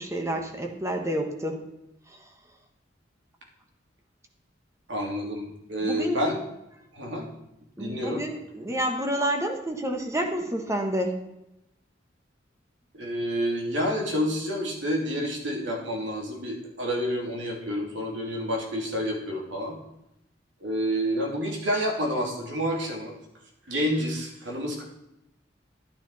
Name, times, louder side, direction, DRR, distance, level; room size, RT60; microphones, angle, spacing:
voice 1, 0.0-1.6 5.8-6.2 7.8-11.2, right 1 dB, 15° right, 3 dB, 1.2 m, -29 dB
voice 2, 4.9-6.4 6.9-7.3 7.8-8.2 12.9-19.8 20.6-23.2 23.7-24.8, equal, 80° right, 0 dB, 2.9 m, -29 dB
11.5 x 9.3 x 4.2 m, 0.86 s
head